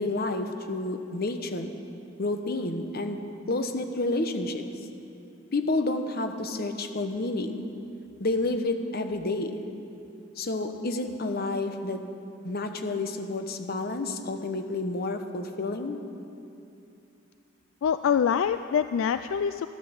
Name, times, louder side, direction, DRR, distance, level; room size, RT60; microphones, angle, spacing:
voice 1, 0.0-1.7 2.2-3.2 3.5-4.6 5.5-7.7 8.2-9.6 10.4-12.1 12.4-16.0, left 2 dB, 50° left, 7 dB, 1.0 m, -30 dB
voice 2, 17.8-19.7, left 7 dB, 75° left, 11 dB, 0.3 m, -25 dB
14.0 x 10.0 x 7.1 m, 2.7 s
head